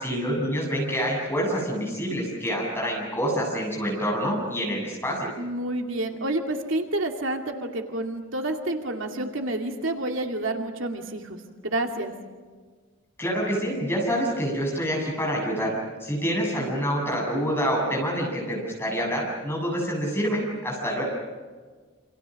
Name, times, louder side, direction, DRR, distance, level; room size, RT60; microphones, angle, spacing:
voice 1, 0.0-5.3 13.2-15.7 16.0-21.0, equal, 10° left, -2 dB, 7.8 m, -27 dB
voice 2, 5.4-12.1, right 1 dB, 75° right, 3 dB, 2.3 m, -29 dB
28.5 x 27.0 x 6.4 m, 1.5 s
head